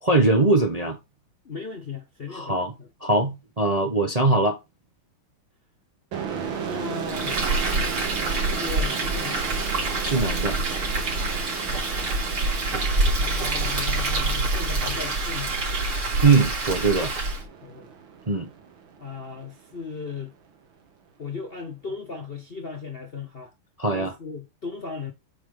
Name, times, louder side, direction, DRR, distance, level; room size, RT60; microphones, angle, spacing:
voice 1, 0.0-1.0 2.3-2.7 3.0-4.6 10.0-10.6 16.2-17.1 18.3-18.5 23.8-24.1, right 3 dB, 25° right, 0.9 m, -21 dB
voice 2, 1.4-2.9 6.5-7.5 8.5-9.4 11.5-11.9 13.1-15.5 17.6-17.9 19.0-20.3 21.2-23.5 23.9-25.1, left 5 dB, 40° left, 0.9 m, -37 dB
sound 1, 6.1-19.6, right 7 dB, 70° right, 2.1 m, -36 dB
Frying (food), 7.1-17.4, right 2 dB, 90° right, 3.7 m, -26 dB
8.7 x 3.9 x 5.0 m
omnidirectional pair, 2.3 m